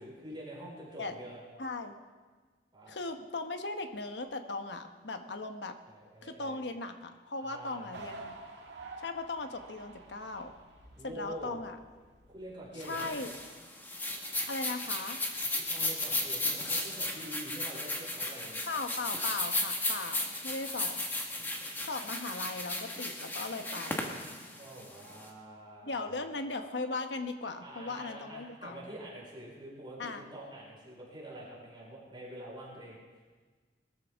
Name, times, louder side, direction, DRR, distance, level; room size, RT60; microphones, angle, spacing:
voice 1, 0.0-1.4 2.7-3.0 5.9-6.6 7.4-8.0 11.0-11.5 12.3-13.2 15.4-18.7 24.5-26.3 27.6-33.0, right 1 dB, 25° right, -4 dB, 4.6 m, -46 dB
voice 2, 1.6-1.9 2.9-5.7 6.2-8.3 9.0-10.5 11.0-11.8 12.8-13.3 14.4-15.2 18.7-21.0 21.9-24.1 25.8-28.9 30.0-30.2, left 3 dB, 70° left, 7 dB, 1.0 m, -38 dB
sound 1, 7.9-13.4, right 2 dB, 85° right, 2.1 m, -50 dB
sound 2, 12.8-25.2, left 2 dB, 10° left, 1.5 m, -35 dB
21.5 x 13.5 x 3.5 m, 1.4 s
head